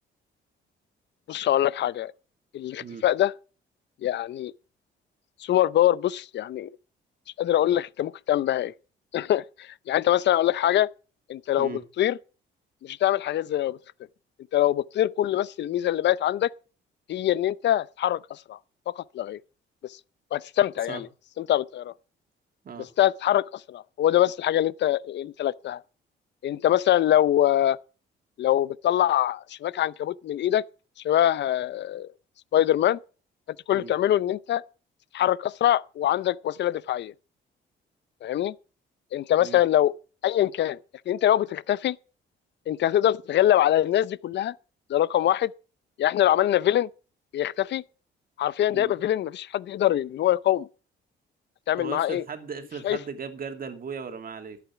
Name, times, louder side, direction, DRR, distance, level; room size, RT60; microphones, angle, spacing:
voice 1, 1.3-2.1 2.5-3.3 4.0-4.5 5.4-6.7 7.4-8.7 9.1-10.9 11.3-11.7 12.0-12.2 12.8-13.8 14.5-16.5 17.1-18.6 18.9-19.4 20.3-21.1 21.4-21.9 22.8-25.8 26.4-27.8 28.4-30.6 31.0-32.1 32.5-33.0 33.7-34.6 35.1-37.1 38.2-38.5 39.1-39.9 40.2-40.8 41.1-42.0 42.7-44.5 44.9-45.5 46.0-46.9 47.3-47.8 48.4-50.7 51.7-52.2 52.8-53.0, left 12 dB, 60° left, 0.6 m, -24 dB
voice 2, 51.8-54.6, right 5 dB, 45° right, 2.5 m, -37 dB
13.5 x 8.4 x 5.8 m
cardioid pair, 90°, 20 cm